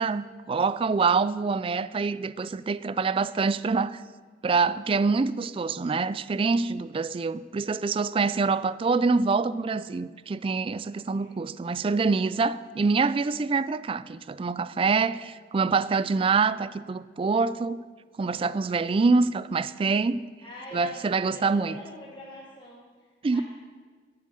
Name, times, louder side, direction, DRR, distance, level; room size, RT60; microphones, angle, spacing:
voice 1, 0.0-4.0 4.4-17.8 18.2-20.2 20.7-21.7 23.2-23.4, right 4 dB, 30° right, 0.3 m, -25 dB
voice 2, 20.4-23.4, left 1 dB, 25° left, 1.9 m, -44 dB
11.0 x 7.5 x 7.6 m
head